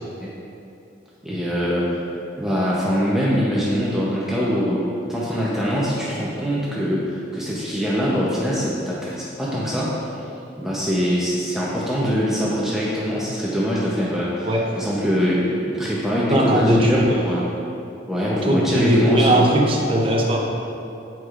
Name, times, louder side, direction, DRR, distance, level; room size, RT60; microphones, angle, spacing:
voice 1, 1.2-2.0 2.4-10.0 10.6-14.5 14.8-17.5 18.1-19.4, equal, 5° right, -7 dB, 0.7 m, -23 dB
voice 2, 16.3-17.2 18.3-20.4, equal, 30° right, -1 dB, 0.8 m, -18 dB
13.5 x 4.8 x 2.5 m, 2.7 s
head